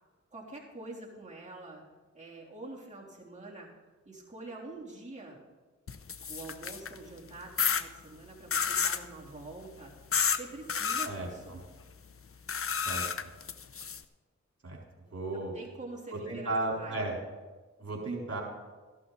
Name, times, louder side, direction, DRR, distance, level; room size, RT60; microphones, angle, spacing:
voice 1, 0.3-1.8 2.1-3.7 4.0-5.4 6.3-9.9 10.3-11.6 15.3-17.2, right 2 dB, 25° right, -4 dB, 3.3 m, -46 dB
sound 1, 5.9-7.0 7.6-7.8 8.5-9.0 10.1-10.4 10.7-11.1 12.5-14.0, left 6 dB, 50° left, 0.6 m, -30 dB
voice 2, 11.0-11.6 12.8-13.1 14.6-14.8 15.1-15.5 16.1-17.2 17.8-18.4, right 2 dB, 55° right, -1 dB, 3.9 m, -34 dB
14.0 x 11.5 x 4.0 m, 1.3 s
cardioid pair, 55°, 29 cm